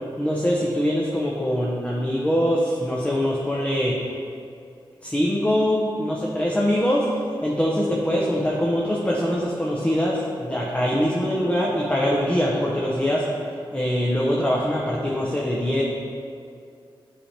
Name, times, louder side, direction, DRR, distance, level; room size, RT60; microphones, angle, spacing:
voice 1, 0.2-4.0 5.0-13.2 13.7-15.8, equal, 15° left, -4 dB, 0.8 m, -23 dB
8.4 x 3.4 x 4.2 m, 2.4 s
cardioid pair, 75°, 9 cm